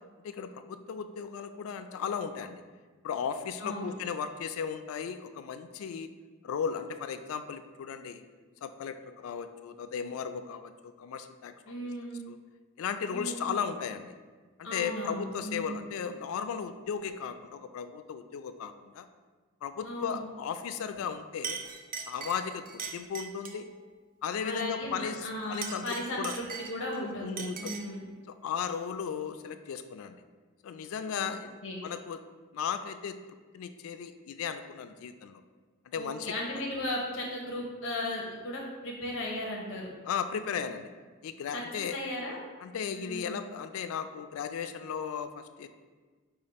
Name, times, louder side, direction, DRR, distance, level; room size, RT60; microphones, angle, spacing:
voice 1, 0.2-2.6 3.0-6.1 6.4-8.2 8.6-11.5 12.3-12.4 12.8-14.1 14.6-19.1 19.6-21.6 22.1-23.7 24.2-26.4 27.0-27.8 28.3-30.2 30.6-32.2 32.5-33.2 33.5-35.4 35.9-36.3 40.0-40.9 41.2-42.0 42.6-45.7, left 7 dB, 85° left, 9 dB, 0.3 m, -36 dB
voice 2, 3.6-3.9 11.7-12.2 13.1-13.5 14.6-15.8 19.8-20.2 24.4-28.0 31.1-31.3 31.6-31.8 36.0-39.9 41.5-42.4 42.9-43.3, left 1 dB, 65° left, -2 dB, 0.7 m, -36 dB
Chink clink, 20.9-21.1 21.4-23.7 25.4-27.0 27.4-28.0, right 6 dB, 40° right, 0.3 m, -40 dB
4.9 x 2.4 x 4.1 m, 1.4 s
head